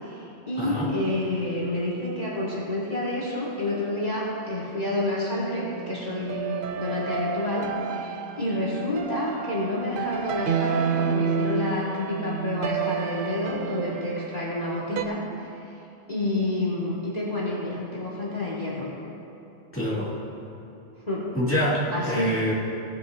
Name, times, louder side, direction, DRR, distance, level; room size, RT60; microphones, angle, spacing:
voice 1, 0.0-15.2 16.1-18.9 21.1-21.3 21.9-22.3, left 1 dB, 35° left, -7 dB, 2.0 m, -29 dB
voice 2, 0.6-0.9 19.7-20.1 21.3-22.5, left 1 dB, 10° left, -8 dB, 2.3 m, -26 dB
sound 1, 5.5-15.0, right 7 dB, 60° right, 0.6 m, -30 dB
18.5 x 9.8 x 2.7 m, 2.8 s
omnidirectional pair, 1.2 m